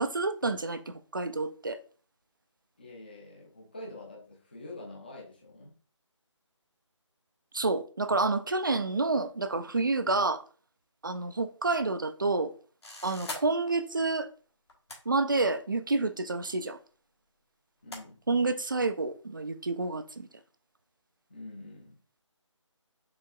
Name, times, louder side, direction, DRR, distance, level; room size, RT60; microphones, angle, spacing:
voice 1, 0.0-1.8 7.5-10.4 11.0-12.5 13.0-14.3 15.1-16.8 18.3-20.3, right 3 dB, 40° right, 0.4 m, -29 dB
voice 2, 2.8-5.7 7.6-8.2 9.5-9.6 17.8-18.2 21.3-22.0, left 2 dB, 20° left, 0.6 m, -46 dB
sound 1, 12.8-13.4 14.7-15.0 16.1-16.2 17.9-18.1, left 2 dB, 55° left, 1.3 m, -39 dB
4.7 x 3.8 x 2.4 m
figure-of-eight pair, 175°, 16 cm